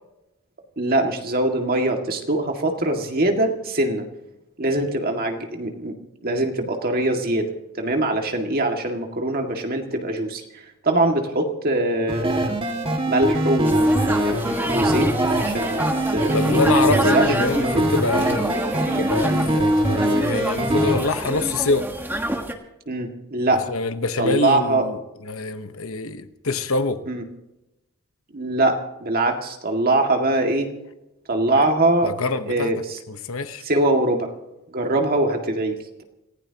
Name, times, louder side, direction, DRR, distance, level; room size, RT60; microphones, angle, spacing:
voice 1, 0.8-4.1 4.6-5.9 6.2-12.6 13.1-14.5 14.7-16.6 16.9-17.9 19.2-19.4 22.9-23.6 24.2-24.9 27.1-27.2 28.3-30.7 31.3-32.1 32.5-33.0 33.6-34.3 34.7-36.0, right 2 dB, 40° right, 2.0 m, -23 dB
sound 1, 12.1-21.0, right 1 dB, 25° right, 1.8 m, -22 dB
sound 2, 13.6-22.5, right 1 dB, 10° right, 1.4 m, -27 dB
voice 2, 16.3-18.5 18.9-21.9 23.7-25.0 25.2-27.0 31.5-31.6 32.0-32.7 33.1-33.6, left 3 dB, 65° left, 1.1 m, -25 dB
27.5 x 15.5 x 2.9 m
head